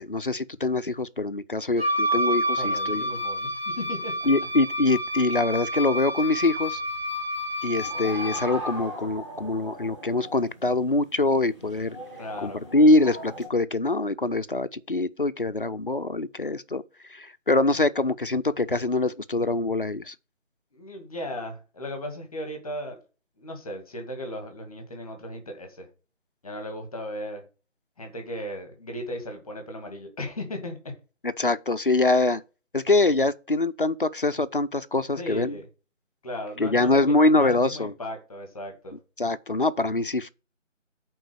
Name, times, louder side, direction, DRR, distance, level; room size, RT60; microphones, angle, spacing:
voice 1, 0.0-3.0 4.3-6.8 7.6-12.0 12.4-16.8 17.1-20.1 31.2-32.4 32.7-35.6 36.6-37.9 39.2-40.3, left 2 dB, 45° left, 0.6 m, -24 dB
Wind instrument woodwind instrument, 1.8-8.6, equal, 50° right, 1.4 m, -29 dB
voice 2, 2.6-4.3 12.2-12.6 20.7-23.0 23.4-25.9 26.4-27.4 28.0-30.8 35.2-35.7 36.2-39.0, left 1 dB, 5° left, 1.5 m, -36 dB
sound 1, 7.7-13.5, right 1 dB, 25° right, 2.4 m, -39 dB
8.9 x 3.9 x 6.7 m
figure-of-eight pair, 165°, 38 cm